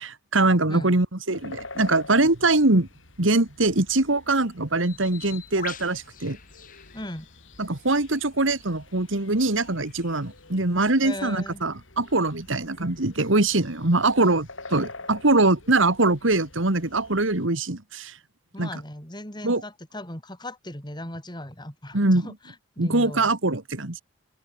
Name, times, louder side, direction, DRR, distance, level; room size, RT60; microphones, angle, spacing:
voice 1, 0.0-2.9 3.2-6.4 7.6-18.2 18.6-18.7 19.4-19.6 21.9-22.3 22.8-24.0, right 2 dB, 80° right, 2.3 m, -23 dB
sound 1, 1.3-17.5, left 3 dB, 80° left, 6.5 m, -47 dB
Bird, 4.8-11.3, left 8 dB, 45° left, 6.2 m, -46 dB
voice 2, 6.9-7.3 11.0-11.6 18.5-23.3, left 1 dB, 20° left, 5.6 m, -37 dB
open air
head